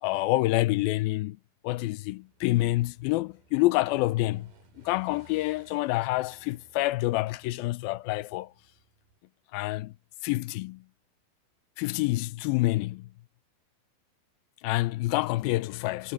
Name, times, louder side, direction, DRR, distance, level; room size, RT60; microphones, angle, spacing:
voice 1, 0.0-1.4 1.6-4.5 4.8-8.5 9.5-9.9 10.2-10.8 11.8-13.1 14.6-16.1, left 19 dB, 80° left, 2.4 m, -27 dB
Motorcycle / Engine, 2.2-9.2, right 4 dB, 60° right, 6.3 m, -60 dB
omnidirectional pair, 4.3 m